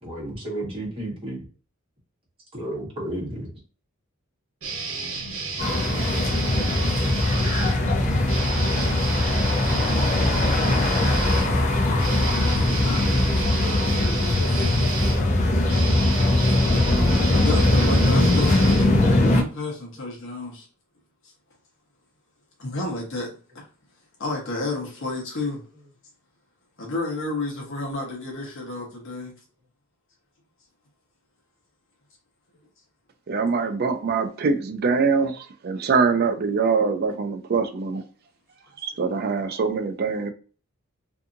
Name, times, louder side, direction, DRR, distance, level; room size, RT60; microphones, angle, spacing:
voice 1, 0.0-1.4 2.5-3.5 39.5-39.6, right 1 dB, 25° right, 1.2 m, -32 dB
sound 1, 4.6-7.8 8.2-19.4, right 4 dB, 75° right, 0.9 m, -32 dB
sound 2, 5.6-19.4, left 1 dB, 35° left, 0.5 m, -21 dB
voice 2, 17.3-20.7 22.6-23.3 23.5-23.6 24.2-25.6 26.8-29.3 33.6-33.7, left 2 dB, 60° left, 0.9 m, -31 dB
voice 3, 33.3-38.0 38.8-40.3, right 5 dB, 45° right, 0.4 m, -23 dB
2.6 x 2.6 x 2.5 m
head